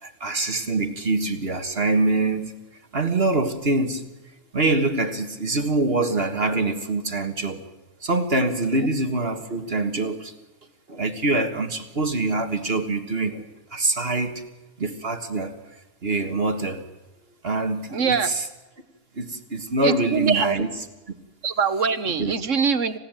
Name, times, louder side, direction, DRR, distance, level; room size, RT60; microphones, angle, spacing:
voice 1, 0.0-2.5 2.9-4.1 4.5-7.6 8.0-10.3 10.9-13.4 13.7-14.4 14.8-15.5 16.0-16.9 17.4-18.5 19.2-20.7 22.2-22.3, right 2 dB, 50° right, 7 dB, 2.0 m, -24 dB
voice 2, 17.9-18.3 19.8-20.5 21.4-23.0, right 6 dB, 70° right, 12 dB, 1.7 m, -23 dB
27.5 x 16.5 x 9.0 m, 1.1 s
omnidirectional pair, 1.3 m